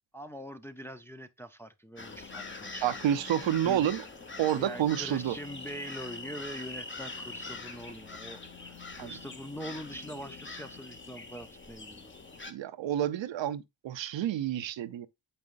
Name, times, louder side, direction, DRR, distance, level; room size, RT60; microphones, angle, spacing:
voice 1, 0.1-2.8 3.6-3.9 4.5-12.1, equal, 5° left, 0.5 m, -43 dB
sound 1, 2.0-12.5, left 3 dB, 25° left, 1.1 m, -43 dB
voice 2, 2.8-4.0 4.4-5.4 9.0-9.2 12.5-15.1, right 11 dB, 70° right, 0.7 m, -29 dB
7.5 x 5.5 x 2.5 m
cardioid pair, 90°, 48 cm